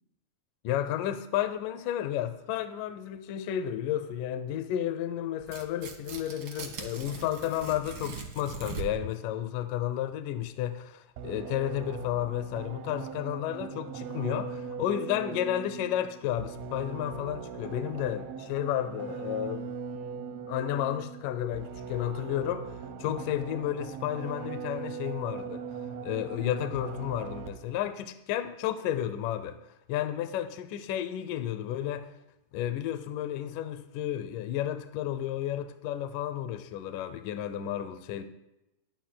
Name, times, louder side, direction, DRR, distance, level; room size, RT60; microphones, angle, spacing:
voice 1, 0.6-19.7 20.5-25.6 26.0-29.6 29.9-32.1 32.5-38.2, left 11 dB, 75° left, 2.1 m, -32 dB
Tearing, 5.4-9.1, right 5 dB, 55° right, 1.3 m, -41 dB
sound 1, 11.2-27.8, right 6 dB, 85° right, 1.5 m, -40 dB
23.5 x 10.5 x 2.3 m
omnidirectional pair, 4.1 m